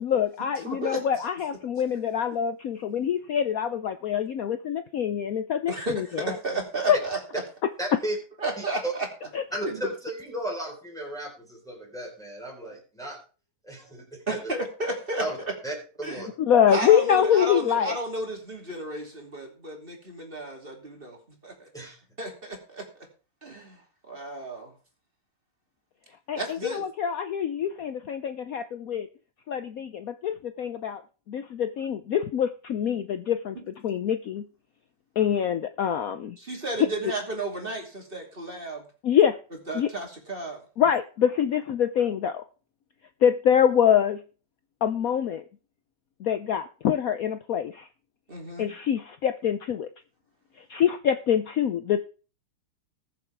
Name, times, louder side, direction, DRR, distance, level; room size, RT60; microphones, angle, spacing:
voice 1, 0.0-6.4 6.9-7.0 9.3-9.4 16.5-18.0 26.3-29.1 29.5-31.0 31.3-33.6 33.8-34.4 35.2-36.4 39.0-39.4 39.7-39.9 40.8-42.4 43.2-44.2 44.8-45.4 46.2-47.9 48.6-49.9 50.7-52.0, left 9 dB, 80° left, 10 dB, 0.7 m, -25 dB
voice 2, 0.6-1.0 5.7-7.2 8.4-9.1 9.6-9.8 14.3-15.5 16.0-16.3 16.7-21.7 22.2-23.1 23.4-24.7 26.3-26.8 33.5-33.7 36.4-38.9 39.7-40.6 48.3-48.7, right 2 dB, 25° right, 1 dB, 3.1 m, -33 dB
voice 3, 7.8-8.2 8.6-8.9 9.5-13.2 13.6-14.4 15.2-15.4 15.6-16.3 21.7-22.0, right 1 dB, ahead, -1 dB, 4.1 m, -34 dB
20.0 x 7.5 x 3.5 m, 0.36 s
omnidirectional pair, 2.4 m